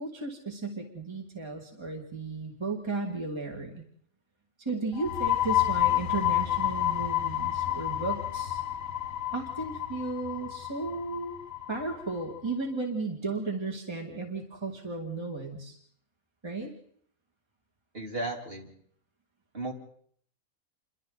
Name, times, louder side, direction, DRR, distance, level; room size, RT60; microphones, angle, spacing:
voice 1, 0.0-3.9 4.6-8.6 9.3-11.4 11.7-15.8 16.4-16.7, right 3 dB, 20° right, 1 dB, 2.3 m, -34 dB
sound 1, 4.9-12.4, left 13 dB, 70° left, 1.6 m, -30 dB
voice 2, 17.9-18.7 19.5-19.7, right 2 dB, 40° right, 0 dB, 3.5 m, -34 dB
28.5 x 23.5 x 4.0 m, 0.64 s
omnidirectional pair, 1.5 m